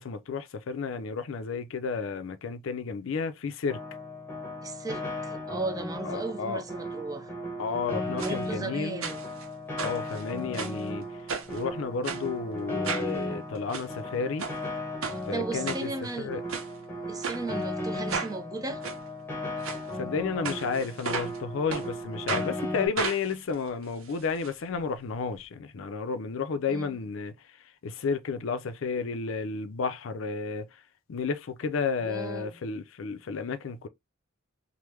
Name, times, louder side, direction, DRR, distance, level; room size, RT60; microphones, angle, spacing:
voice 1, 0.0-3.8 6.0-6.6 7.6-9.1 9.8-11.1 11.5-14.5 15.3-15.9 16.2-16.4 19.9-27.3 27.8-30.7 31.1-33.9, left 5 dB, 70° left, 0.4 m, -32 dB
Piano, 3.7-22.9, left 1 dB, 10° left, 0.9 m, -36 dB
voice 2, 4.6-7.3 8.2-9.2 15.3-16.4 17.1-18.8 26.7-26.9 32.0-32.6, right 3 dB, 20° right, 0.5 m, -36 dB
sound 1, 8.2-8.4 9.0-9.5 9.8-10.8 11.3-11.6 12.0-12.2 12.8-13.1 13.5-13.9 14.4-14.6 15.0-15.2 15.7-16.1 16.5-16.7 17.2-17.4 18.1-18.3 18.8-19.0 19.6-19.8 20.4-21.4 21.7-21.9 22.3-22.5 23.0-24.5 24.8-24.9 25.1-25.2, right 5 dB, 80° right, 0.7 m, -34 dB
3.4 x 2.1 x 3.0 m
head